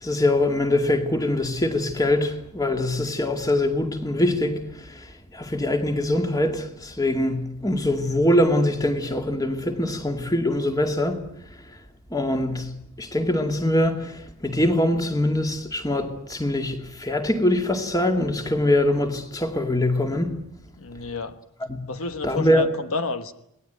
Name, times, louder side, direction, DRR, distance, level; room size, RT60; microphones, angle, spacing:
voice 1, 0.0-4.6 4.9-5.1 5.3-11.2 12.1-12.7 13.0-20.3 21.6-21.8 22.2-22.7, left 1 dB, 15° left, 2.3 m, -23 dB
voice 2, 20.8-21.4 21.9-23.3, left 3 dB, 70° left, 1.3 m, -30 dB
27.5 x 19.0 x 9.3 m
head